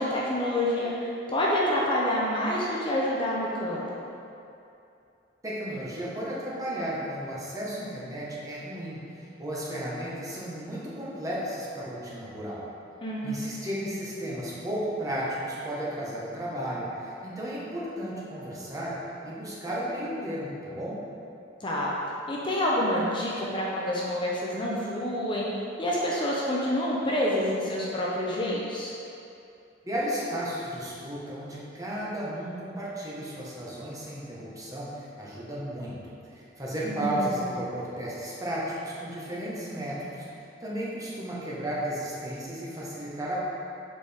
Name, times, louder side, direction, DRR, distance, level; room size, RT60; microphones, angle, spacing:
voice 1, 0.0-4.0 13.0-13.3 21.6-21.9 22.3-25.5 25.8-28.9 36.8-37.4, left 1 dB, 25° left, -5 dB, 0.6 m, -28 dB
voice 2, 5.4-12.7 13.2-18.9 19.2-21.0 29.8-43.4, right 1 dB, 20° right, -7 dB, 1.2 m, -34 dB
6.8 x 4.8 x 3.5 m, 2.7 s
head